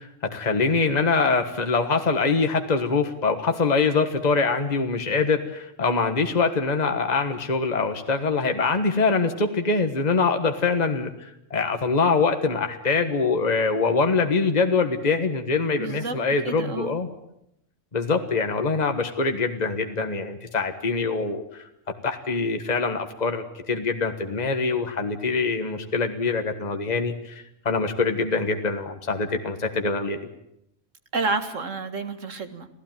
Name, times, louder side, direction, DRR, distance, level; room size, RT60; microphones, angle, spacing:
voice 1, 0.0-17.1 17.9-21.7 22.0-30.2, left 4 dB, 35° left, 6 dB, 1.6 m, -24 dB
voice 2, 15.8-16.2 16.4-16.9 31.1-32.7, right 3 dB, 75° right, 9 dB, 2.3 m, -29 dB
27.0 x 16.5 x 9.2 m, 0.81 s
omnidirectional pair, 1.3 m